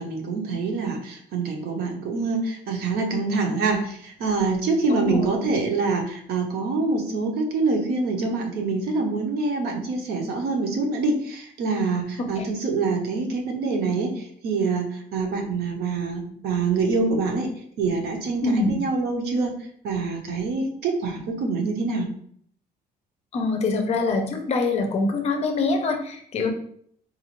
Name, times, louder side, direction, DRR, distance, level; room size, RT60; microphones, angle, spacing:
voice 1, 0.0-17.5 17.8-19.5 19.8-22.1, right 3 dB, 70° right, 3 dB, 0.7 m, -25 dB
voice 2, 4.9-5.3 12.2-12.5 18.4-18.7 23.3-26.5, left 3 dB, 40° left, 4 dB, 0.5 m, -24 dB
3.9 x 2.3 x 3.0 m, 0.63 s
cardioid pair, 175°, 17 cm